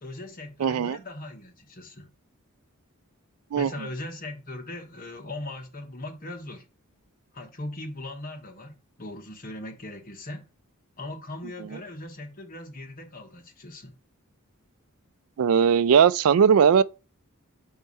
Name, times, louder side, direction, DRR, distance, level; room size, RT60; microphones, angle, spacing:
voice 1, 0.0-2.1 3.5-6.7 7.3-10.4 11.0-13.9, left 1 dB, 40° left, 1.2 m, -39 dB
voice 2, 0.6-1.0 3.5-3.7 15.4-16.8, right 7 dB, 75° right, 0.4 m, -19 dB
4.6 x 4.4 x 5.3 m
head